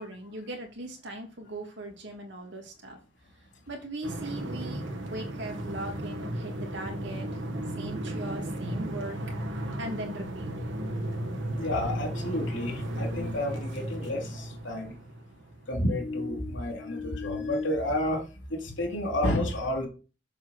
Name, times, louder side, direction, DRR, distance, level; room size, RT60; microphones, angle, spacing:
voice 1, 0.0-3.0 3.7-7.4 7.8-9.2 9.8-10.5, right 1 dB, 65° right, 2.7 m, -39 dB
sound 1, 4.0-15.9, right 1 dB, 85° right, 1.7 m, -35 dB
voice 2, 11.6-14.9 15.7-18.2 18.5-19.9, left 1 dB, 80° left, 2.8 m, -30 dB
7.2 x 4.7 x 6.4 m
head